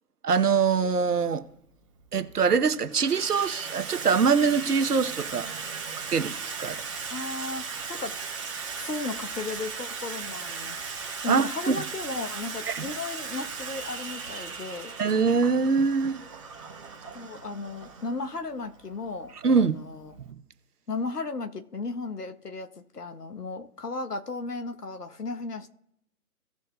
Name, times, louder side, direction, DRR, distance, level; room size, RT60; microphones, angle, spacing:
voice 1, 0.2-1.5 2.1-5.5 6.1-6.8 11.3-11.8 12.7-12.8 15.0-16.2 19.4-19.8, right 5 dB, 80° right, 0.9 m, -23 dB
Water tap faucet / Sink (filling or washing), 0.9-1.1 2.0-2.4 2.7-20.3, right 5 dB, 20° right, 0.9 m, -37 dB
voice 2, 7.1-7.6 7.9-8.1 8.8-10.8 11.2-14.9 17.1-20.1 20.9-25.7, left 3 dB, 85° left, 1.1 m, -35 dB
17.0 x 6.4 x 2.2 m
figure-of-eight pair, 140°, 46 cm